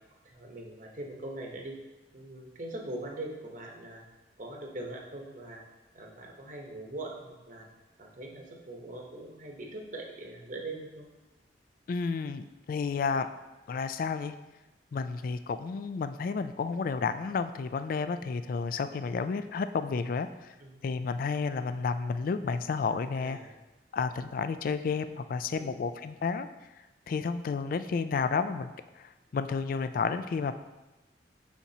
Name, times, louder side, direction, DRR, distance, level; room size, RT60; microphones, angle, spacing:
voice 1, 0.1-1.8 2.1-4.0 4.4-5.6 5.9-7.7 8.0-11.1 20.6-20.8 23.2-23.5 25.5-25.8, right 2 dB, 45° right, 1 dB, 0.9 m, -42 dB
voice 2, 11.9-13.3 13.7-14.3 14.9-20.5 20.8-23.4 23.9-26.5 27.1-30.5, left 5 dB, 50° left, 11 dB, 0.3 m, -31 dB
7.0 x 5.9 x 2.8 m, 1.1 s
head